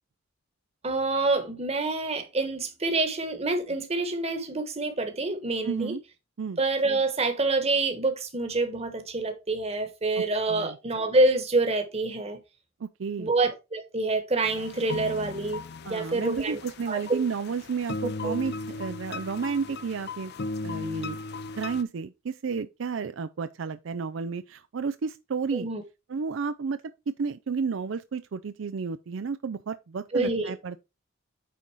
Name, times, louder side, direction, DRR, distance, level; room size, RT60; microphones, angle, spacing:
voice 1, 0.8-5.9 6.6-12.4 13.2-15.6 15.9-16.6 16.9-17.2 18.2-18.4 25.5-25.8 30.1-30.5, right 2 dB, 30° right, 1.4 m, -27 dB
voice 2, 5.6-6.0 6.4-6.6 10.2-10.3 10.5-10.8 12.8-13.3 15.8-20.3 20.6-21.2 21.5-25.7 26.1-26.8 27.1-30.8, right 5 dB, 65° right, 0.4 m, -32 dB
sound 1, 14.4-21.8, left 3 dB, 50° left, 0.6 m, -37 dB
9.3 x 4.0 x 4.6 m
head